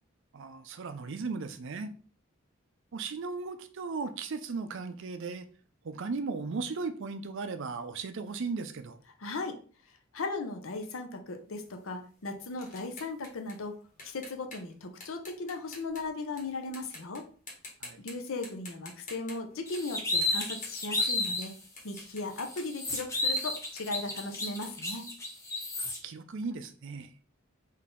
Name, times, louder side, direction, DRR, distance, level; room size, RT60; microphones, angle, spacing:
voice 1, 0.3-1.9 2.9-5.5 5.8-9.0 17.8-18.0 25.8-27.1, right 4 dB, 65° right, 10 dB, 0.5 m, -36 dB
voice 2, 9.2-9.6 10.1-13.8 14.0-17.2 18.0-21.5 21.8-25.1, left 3 dB, 70° left, 5 dB, 0.7 m, -37 dB
sound 1, 11.5-16.4 16.7-17.2 17.5-18.1 18.4-21.5 21.8-24.8, left 2 dB, 35° left, 1.4 m, -48 dB
sound 2, 19.7-21.5 21.9-22.0 22.4-26.0, left 2 dB, 15° left, 0.7 m, -32 dB
3.9 x 2.7 x 3.7 m, 0.42 s
head